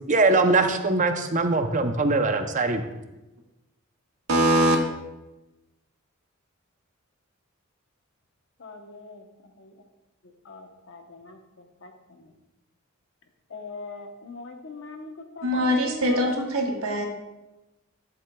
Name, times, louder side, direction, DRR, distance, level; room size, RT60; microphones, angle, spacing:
voice 1, 0.1-2.8, right 3 dB, 35° right, 7 dB, 0.6 m, -22 dB
voice 2, 4.3-4.8 15.4-17.1, right 1 dB, 90° right, 1 dB, 1.5 m, -22 dB
voice 3, 8.6-9.7 10.2-12.3 13.5-16.3 16.6-16.7, left 3 dB, 65° left, 4 dB, 1.0 m, -42 dB
11.0 x 7.8 x 2.3 m, 1.0 s
head